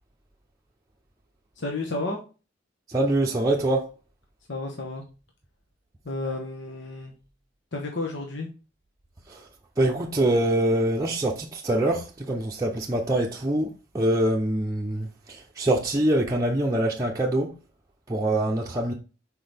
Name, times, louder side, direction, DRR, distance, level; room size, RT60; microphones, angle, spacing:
voice 1, 1.6-2.2 4.5-5.0 6.0-7.1 7.7-8.5, left 2 dB, 65° left, 1.2 m, -31 dB
voice 2, 2.9-3.9 9.3-9.5 9.8-17.5 18.1-18.9, right 1 dB, 20° right, 0.7 m, -24 dB
6.1 x 4.6 x 3.5 m
head